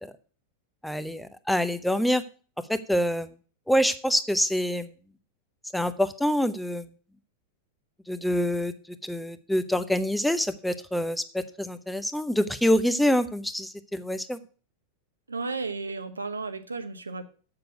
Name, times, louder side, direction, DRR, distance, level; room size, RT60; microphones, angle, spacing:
voice 1, 0.8-2.2 2.7-3.3 3.7-4.9 5.7-6.9 8.1-8.7 9.0-14.4, equal, ahead, 11 dB, 0.7 m, -26 dB
voice 2, 15.3-17.2, right 3 dB, 75° right, 10 dB, 1.0 m, -33 dB
7.7 x 6.8 x 8.1 m, 0.40 s
figure-of-eight pair, 90°, 0 cm